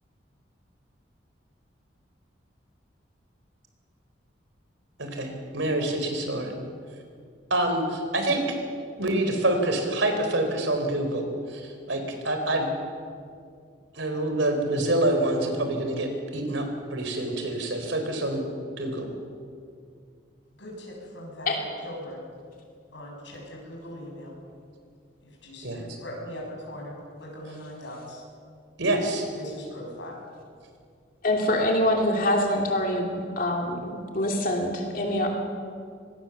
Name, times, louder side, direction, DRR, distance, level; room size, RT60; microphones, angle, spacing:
voice 1, 5.0-6.5 7.5-8.4 9.0-12.7 13.9-18.4 18.8-19.1 25.6-26.0 28.8-29.3, right 1 dB, 85° right, 5 dB, 4.2 m, -26 dB
voice 2, 20.6-22.2 22.9-24.3 25.4-28.2 29.3-30.2, equal, 75° left, -2 dB, 7.1 m, -40 dB
voice 3, 31.2-33.1 33.4-35.3, left 1 dB, 45° left, 1 dB, 2.7 m, -25 dB
24.5 x 19.5 x 7.3 m, 2.2 s
head